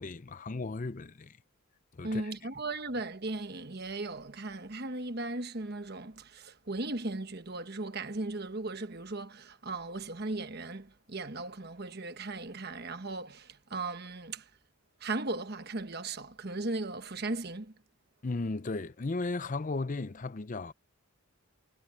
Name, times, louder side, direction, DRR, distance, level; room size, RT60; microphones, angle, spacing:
voice 1, 0.0-1.4 1.9-2.3 18.2-20.7, left 3 dB, 35° left, 0.5 m, -35 dB
voice 2, 2.0-14.4 15.0-17.7, right 2 dB, 45° right, 1.3 m, -37 dB
head